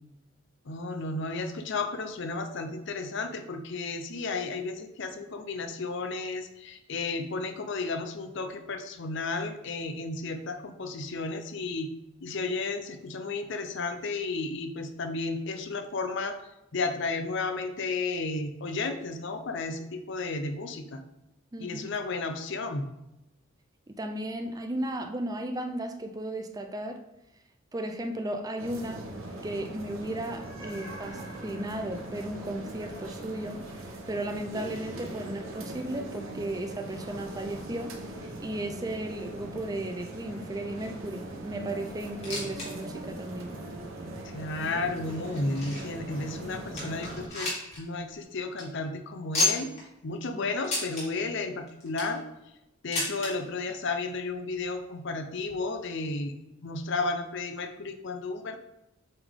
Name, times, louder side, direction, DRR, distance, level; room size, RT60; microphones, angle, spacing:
voice 1, 0.7-11.9 12.2-16.4 16.7-21.0 21.6-22.8 44.2-49.7 50.0-52.2 52.8-56.3 56.6-58.6, left 3 dB, 60° left, 7 dB, 0.6 m, -33 dB
voice 2, 21.5-21.9 23.9-27.0 27.7-29.0 29.4-33.6 34.1-37.9 38.4-43.5 50.3-50.5, right 1 dB, 20° right, 5 dB, 0.4 m, -35 dB
sound 1, 28.6-47.3, right 1 dB, 75° right, 1.0 m, -40 dB
sound 2, 42.0-42.7 43.0-43.1 43.7-43.8 44.5-46.0 46.4-46.5 46.8-47.8 48.1-48.2 48.5-48.6 49.3-49.8 50.6-51.0 51.7-52.2 52.9-53.3 54.3-54.4 54.6-54.7 55.5-55.6, left 2 dB, 35° left, 2.4 m, -31 dB
8.1 x 3.5 x 3.6 m, 0.91 s
head